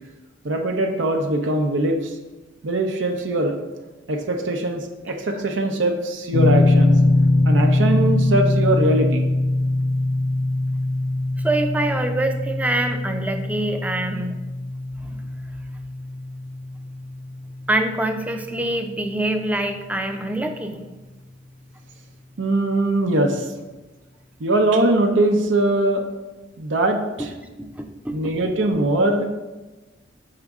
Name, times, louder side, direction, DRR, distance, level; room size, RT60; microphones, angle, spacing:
voice 1, 0.4-2.1 2.6-3.5 4.1-6.9 7.4-9.3 22.4-23.4 24.4-26.0 26.6-27.3 28.1-29.3, right 1 dB, 80° right, 3 dB, 0.6 m, -21 dB
sound 1, 6.3-19.2, left 2 dB, 80° left, 0.5 m, -22 dB
voice 2, 11.4-14.4 15.0-15.2 17.7-20.8 27.2-27.3 27.6-28.3, right 1 dB, 10° right, 5 dB, 0.4 m, -25 dB
6.5 x 5.0 x 3.6 m, 1.2 s
head